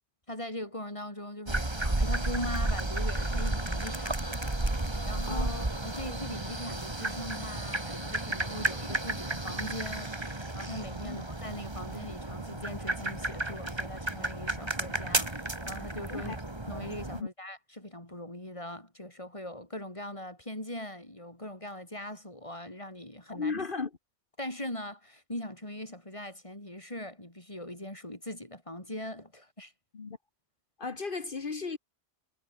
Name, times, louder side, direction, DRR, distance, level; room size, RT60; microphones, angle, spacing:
voice 1, 0.3-4.4 5.0-5.5 5.8-10.1 10.5-16.3 16.7-23.6 24.4-29.7, left 1 dB, 25° left, 4.8 m, -41 dB
sound 1, 1.5-17.2, right 2 dB, 20° right, 2.3 m, -33 dB
voice 2, 5.2-5.6 11.0-11.2 16.1-16.4 17.1-17.3 23.3-23.9 29.9-30.2 30.8-31.8, left 4 dB, 50° left, 1.4 m, -35 dB
omnidirectional pair, 1.2 m